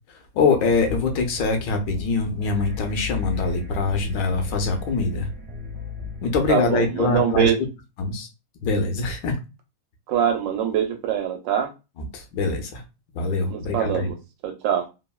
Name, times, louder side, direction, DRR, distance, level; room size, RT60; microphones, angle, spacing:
voice 1, 0.3-5.3 6.2-7.5 8.0-8.3 8.6-9.4 12.0-12.8 13.1-14.1, left 4 dB, 75° left, 1.3 m, -23 dB
sound 1, 0.7-6.5, left 6 dB, 55° right, 0.8 m, -34 dB
voice 2, 6.5-7.6 10.1-11.7 13.5-14.2 14.4-14.9, right 9 dB, 90° right, 1.3 m, -23 dB
3.4 x 2.1 x 2.2 m
omnidirectional pair, 2.0 m